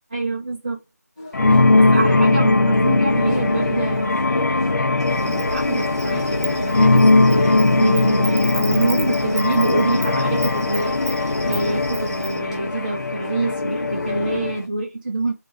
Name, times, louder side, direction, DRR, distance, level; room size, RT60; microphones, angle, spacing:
voice 1, 0.1-0.8 1.9-4.7 5.1-7.0 7.3-15.3, right 3 dB, 30° right, 0.5 m, -26 dB
sound 1, 1.2-14.7, left 2 dB, 20° left, 0.6 m, -42 dB
sound 2, 1.3-14.6, left 2 dB, 90° left, 0.5 m, -19 dB
Insect, 5.0-12.4, right 2 dB, 60° right, 0.9 m, -35 dB
2.6 x 2.3 x 3.6 m
figure-of-eight pair, 170°, 9 cm